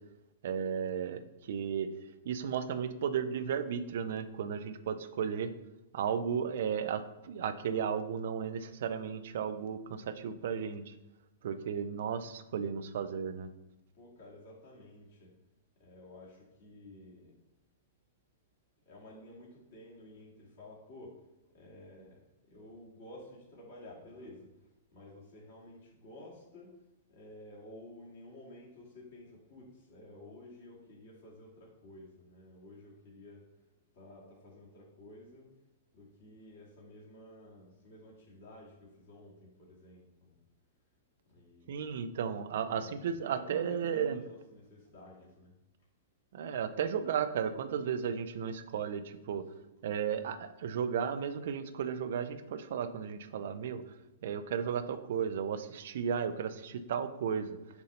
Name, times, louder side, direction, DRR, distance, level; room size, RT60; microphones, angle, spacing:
voice 1, 0.4-1.9 2.2-5.5 5.9-10.9 11.4-13.5 41.7-44.2 46.3-49.5 49.8-53.8 54.2-57.6, right 7 dB, 60° right, 12 dB, 0.5 m, -34 dB
voice 2, 13.9-15.3 15.8-17.4 18.9-21.3 21.5-26.8 27.1-33.5 33.9-35.5 35.9-40.4 41.3-42.0 42.7-45.5 49.4-49.5, left 1 dB, 55° left, -5 dB, 2.1 m, -53 dB
6.9 x 2.8 x 5.4 m, 0.98 s
figure-of-eight pair, 105°, 0 cm